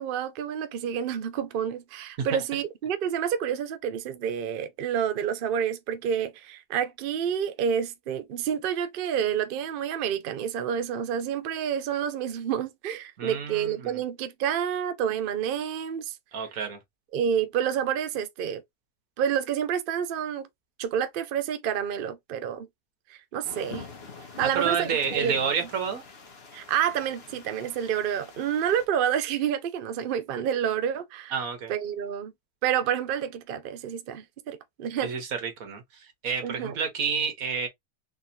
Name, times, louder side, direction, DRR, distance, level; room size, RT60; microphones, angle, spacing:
voice 1, 0.0-16.1 17.1-18.6 19.2-20.5 20.8-22.7 23.1-23.9 24.4-25.3 26.5-31.3 31.7-32.3 32.6-35.1 36.4-36.7, right 8 dB, 85° right, 0.4 m, -29 dB
voice 2, 13.2-14.0 16.3-16.8 24.5-26.0 31.3-31.7 35.0-37.7, right 6 dB, 65° right, 1.5 m, -29 dB
sound 1, 23.4-28.8, left 4 dB, 45° left, 1.0 m, -45 dB
4.0 x 2.6 x 2.7 m
omnidirectional pair, 1.7 m